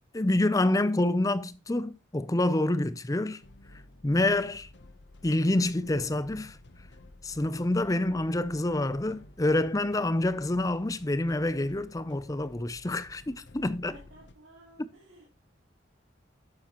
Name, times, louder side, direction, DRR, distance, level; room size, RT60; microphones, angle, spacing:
voice 1, 0.1-3.4 4.0-4.7 5.2-6.6 7.2-13.9, left 1 dB, 15° left, 0.5 m, -27 dB
sound 1, 3.4-14.4, left 1 dB, 60° left, 0.9 m, -53 dB
voice 2, 13.9-15.3, equal, 75° right, 4.2 m, -54 dB
11.5 x 9.1 x 3.0 m
head